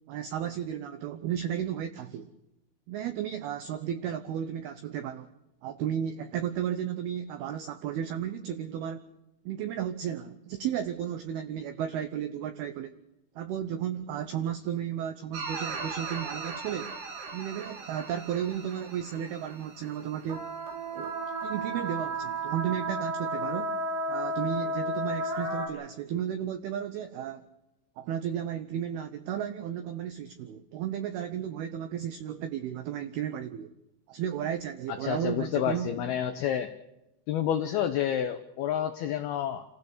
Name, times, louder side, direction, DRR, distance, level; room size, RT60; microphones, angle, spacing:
voice 1, 0.1-2.3 2.9-5.3 5.6-9.0 9.5-13.0 13.4-17.0 17.3-20.5 20.9-21.2 21.4-23.8 24.1-27.5 28.0-33.7 34.1-35.9, right 9 dB, 85° right, 9 dB, 2.2 m, -34 dB
sound 1, 15.3-19.9 20.2-25.7, right 1 dB, 55° right, 5.1 m, -34 dB
voice 2, 34.9-36.7 37.3-39.7, left 10 dB, 80° left, 8 dB, 2.2 m, -29 dB
29.0 x 16.0 x 6.8 m, 0.96 s
omnidirectional pair, 5.7 m